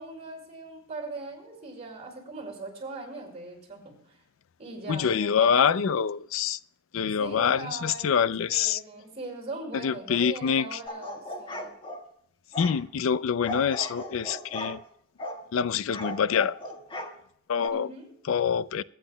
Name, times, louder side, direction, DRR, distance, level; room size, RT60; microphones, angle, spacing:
voice 1, 0.0-4.2 4.6-6.0 7.2-11.7 17.7-18.1, right 3 dB, 30° right, 5.3 m, -40 dB
voice 2, 4.9-6.6 6.9-8.8 9.7-10.8 12.6-14.8 15.5-16.6 17.5-17.9 18.3-18.8, left 7 dB, 80° left, 0.4 m, -25 dB
sound 1, 10.9-12.0 12.5-12.8 13.5-14.8 15.2-15.4 15.9-17.1 17.6-17.7, left 1 dB, 25° left, 1.5 m, -37 dB
23.0 x 10.0 x 2.2 m
head